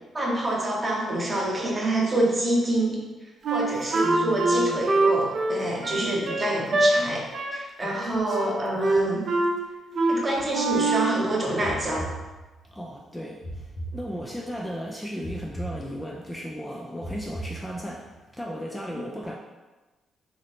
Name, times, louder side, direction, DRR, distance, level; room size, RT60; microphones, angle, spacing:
voice 1, 0.1-3.0 3.5-9.3 10.1-12.1, right 1 dB, 25° right, -2 dB, 0.8 m, -27 dB
Wind instrument woodwind instrument, 3.4-6.9 7.3-7.6 7.9-8.5 8.8-9.6 9.9-10.2 10.5-11.2, right 2 dB, 60° right, 0.5 m, -24 dB
voice 2, 3.7-4.8 5.9-6.5 7.8-8.0 8.3-8.4 8.7-9.1 9.9-10.0 12.6-19.3, equal, 10° left, -1 dB, 0.3 m, -36 dB
sound 1, 11.6-12.8 13.4-14.6 15.2-16.4 17.0-18.2, right 1 dB, 65° left, 0.7 m, -38 dB
2.7 x 2.5 x 3.4 m, 1.2 s
cardioid pair, 85°, 0 cm